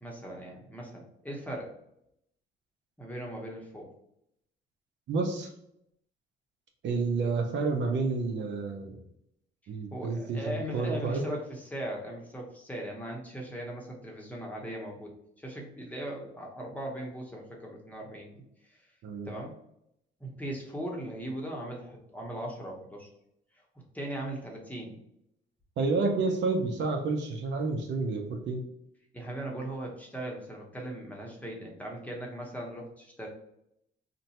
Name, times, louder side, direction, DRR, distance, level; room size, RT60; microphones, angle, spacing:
voice 1, 0.0-1.8 3.0-3.9 9.9-15.1 15.4-18.4 18.7-18.8 19.3-19.5 20.2-23.1 23.9-25.0 29.1-33.3, right 1 dB, 10° left, -1 dB, 0.9 m, -39 dB
voice 2, 5.1-5.5 6.8-9.0 9.7-11.2 19.0-19.3 25.8-28.6, right 3 dB, 65° right, 3 dB, 0.6 m, -30 dB
2.6 x 2.2 x 4.0 m, 0.77 s
cardioid pair, 90°, 20 cm